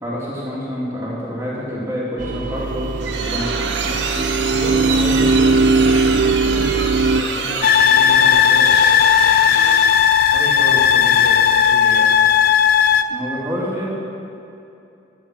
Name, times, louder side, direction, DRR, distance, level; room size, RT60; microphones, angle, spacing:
voice 1, 0.0-4.0 13.1-13.9, equal, 15° right, -6 dB, 2.3 m, -27 dB
sound 1, 2.2-7.2, right 3 dB, 40° right, 0.4 m, -19 dB
sound 2, 2.6-10.1, right 4 dB, 75° right, 0.8 m, -27 dB
voice 2, 4.4-8.9 9.2-9.4 10.3-12.2, equal, 35° left, -8 dB, 1.8 m, -31 dB
sound 3, 7.6-13.0, left 8 dB, 50° left, 0.3 m, -14 dB
12.0 x 7.0 x 5.9 m, 2.7 s
head